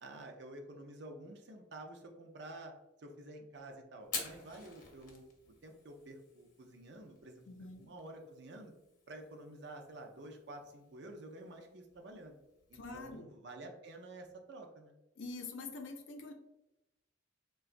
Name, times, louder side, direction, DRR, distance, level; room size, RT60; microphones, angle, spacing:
voice 1, 0.0-2.7 3.0-5.2 5.6-7.4 7.8-8.7 9.1-12.4 12.7-14.9, right 1 dB, 65° right, 3 dB, 0.5 m, -50 dB
Fire, 4.0-13.2, left 4 dB, 45° left, 0.7 m, -50 dB
voice 2, 7.5-7.9 12.7-13.2 15.2-16.3, left 3 dB, 80° left, 5 dB, 0.5 m, -45 dB
3.9 x 2.3 x 2.5 m, 0.94 s
head